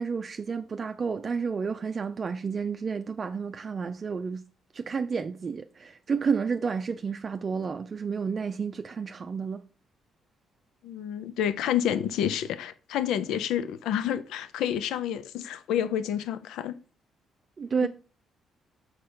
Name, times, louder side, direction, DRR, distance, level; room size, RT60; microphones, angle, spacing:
voice 1, 0.0-4.4 4.7-9.6 17.6-17.9, right 5 dB, 40° right, 0.4 m, -31 dB
voice 2, 10.8-16.8 17.8-17.9, left 10 dB, 85° left, 0.5 m, -29 dB
6.5 x 4.4 x 4.9 m
cardioid pair, 90°, 0 cm